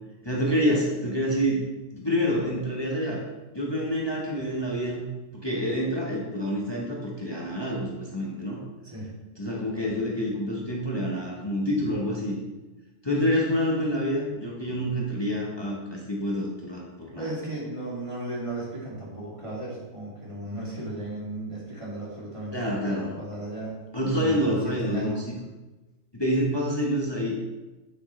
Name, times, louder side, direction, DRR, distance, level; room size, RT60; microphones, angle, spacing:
voice 1, 0.2-1.7 1.9-3.2 3.5-5.1 5.3-8.6 9.4-12.4 13.0-17.3 22.5-23.1 23.9-25.4 26.1-27.3, equal, 20° left, -4 dB, 1.4 m, -27 dB
voice 2, 17.2-23.8 24.1-25.2, right 2 dB, 25° right, -6 dB, 2.7 m, -35 dB
9.2 x 7.9 x 3.3 m, 1.1 s
omnidirectional pair, 1.3 m